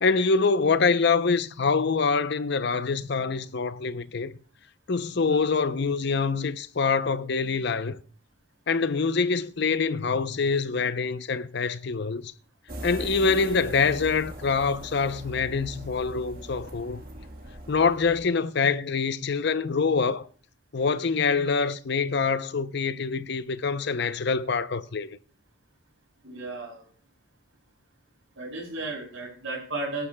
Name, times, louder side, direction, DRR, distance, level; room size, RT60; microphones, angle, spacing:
voice 1, 0.0-4.3 4.9-8.0 8.7-12.3 12.8-17.0 17.7-20.3 20.7-25.2, left 4 dB, 55° left, 0.6 m, -25 dB
sound 1, 12.7-18.2, right 1 dB, 50° right, 1.4 m, -40 dB
voice 2, 26.2-26.8 28.4-30.1, right 2 dB, 75° right, 5.3 m, -35 dB
21.5 x 11.5 x 2.2 m
head